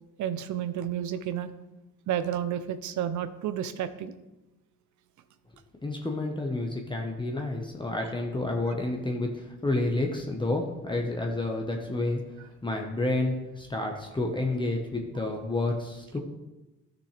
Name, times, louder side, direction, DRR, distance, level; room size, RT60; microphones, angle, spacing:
voice 1, 0.2-1.5 2.1-4.1, right 10 dB, 75° right, 12 dB, 0.7 m, -31 dB
voice 2, 5.8-12.2 12.6-16.2, left 2 dB, 15° left, 1 dB, 1.1 m, -30 dB
12.5 x 6.4 x 3.4 m, 1.0 s
cardioid pair, 90°, 30 cm